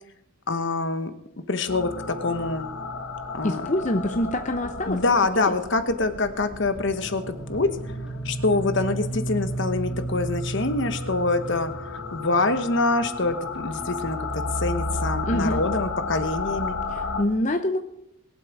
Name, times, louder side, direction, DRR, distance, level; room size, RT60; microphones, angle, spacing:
voice 1, 0.5-1.1 1.5-2.7 3.3-3.6 4.9-7.2 7.5-8.0 8.2-16.8, left 3 dB, 55° left, 10 dB, 1.1 m, -25 dB
sound 1, 1.7-17.2, left 1 dB, 75° left, 1.6 m, -32 dB
voice 2, 3.4-5.0 5.4-5.5 15.2-15.6 16.9-17.8, left 1 dB, 35° left, 6 dB, 0.7 m, -25 dB
sound 2, 6.8-15.2, equal, 5° right, 1.3 m, -44 dB
22.0 x 8.0 x 4.8 m, 0.83 s
head